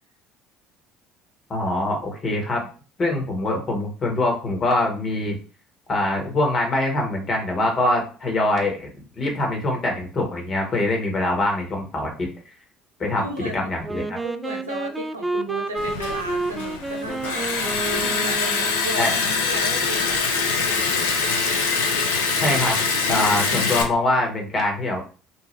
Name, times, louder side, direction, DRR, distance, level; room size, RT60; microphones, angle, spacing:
voice 1, 1.5-2.7 3.0-5.4 5.9-8.9 9.2-12.3 13.0-13.3 13.5-14.2 19.0-19.2 22.4-22.8 23.1-25.0, left 2 dB, 40° left, 1 dB, 1.2 m, -23 dB
voice 2, 13.1-13.7 14.2-21.0, right 1 dB, 85° right, 1 dB, 0.6 m, -34 dB
Wind instrument woodwind instrument, 13.8-19.0, right 2 dB, 15° right, 0.3 m, -30 dB
Liquid, 15.8-23.8, left 4 dB, 75° left, 0.5 m, -24 dB
2.7 x 2.2 x 3.1 m, 0.36 s
figure-of-eight pair, 60°, 0 cm